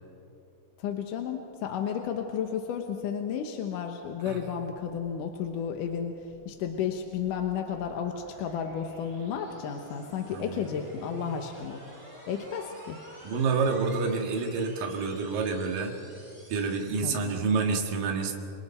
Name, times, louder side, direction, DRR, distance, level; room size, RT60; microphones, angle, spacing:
voice 1, 0.8-11.9 12.3-13.0 17.0-17.4, left 7 dB, 70° left, 4 dB, 2.5 m, -33 dB
sound 1, 5.4-17.8, right 1 dB, 10° right, 5.3 m, -52 dB
voice 2, 13.2-16.0 16.5-18.4, right 4 dB, 75° right, 2 dB, 3.5 m, -28 dB
29.5 x 25.0 x 4.4 m, 2.7 s
omnidirectional pair, 4.1 m